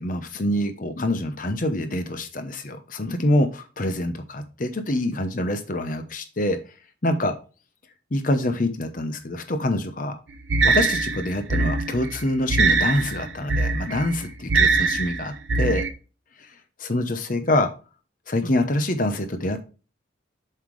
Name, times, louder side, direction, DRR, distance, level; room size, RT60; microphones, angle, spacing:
voice 1, 0.0-6.6 7.0-7.3 8.1-10.1 10.6-15.8 16.4-16.5 16.8-17.7 18.3-19.6, left 1 dB, 45° left, 8 dB, 0.8 m, -25 dB
sound 1, 10.5-15.9, right 3 dB, 70° right, 0.7 m, -22 dB
7.5 x 5.7 x 3.2 m, 0.34 s
head